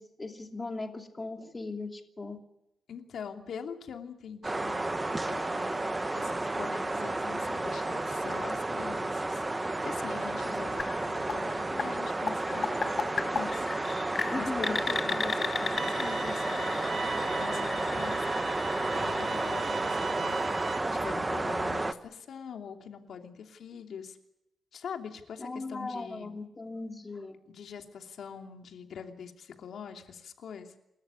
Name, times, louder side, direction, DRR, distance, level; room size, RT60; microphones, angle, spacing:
voice 1, 0.0-2.4 14.3-14.8 25.4-27.4, left 3 dB, 20° left, 4 dB, 2.8 m, -38 dB
voice 2, 2.9-4.9 5.3-5.8 6.1-13.7 14.3-18.4 18.9-24.2 24.7-26.3 27.5-30.8, left 7 dB, 70° left, 4 dB, 2.9 m, -44 dB
sound 1, 4.4-21.9, right 2 dB, 15° right, 1.1 m, -32 dB
sound 2, 10.8-20.6, left 5 dB, 40° left, 1.0 m, -37 dB
sound 3, 15.8-20.8, right 7 dB, 50° right, 1.6 m, -39 dB
29.0 x 13.5 x 9.8 m, 0.87 s
wide cardioid pair, 140°, 0 cm